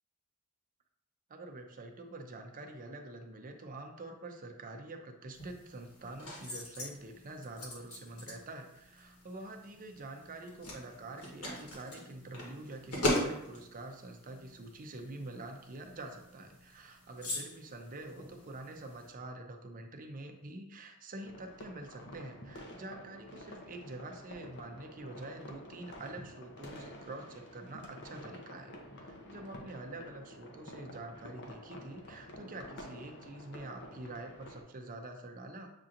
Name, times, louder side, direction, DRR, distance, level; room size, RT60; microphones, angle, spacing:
voice 1, 1.3-35.8, right 2 dB, 40° right, 4 dB, 0.6 m, -46 dB
sound 1, 5.3-19.1, left 1 dB, 70° left, 1.4 m, -41 dB
sound 2, 21.2-34.6, left 1 dB, 50° left, 0.7 m, -50 dB
7.4 x 2.7 x 2.5 m, 0.85 s
head